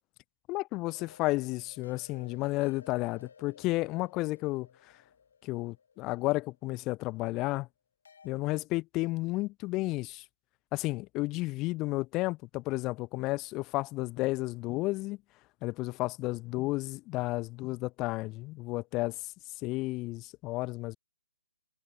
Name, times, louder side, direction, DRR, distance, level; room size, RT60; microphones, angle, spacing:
voice 1, 0.5-4.9 5.4-7.7 8.2-10.2 10.7-15.2 15.6-19.3 19.6-21.0, left 20 dB, 25° left, 0.9 m, -32 dB
sound 1, 0.8-6.9 8.0-8.3, left 6 dB, 65° left, 3.1 m, -56 dB
hypercardioid pair, 140°, 0 cm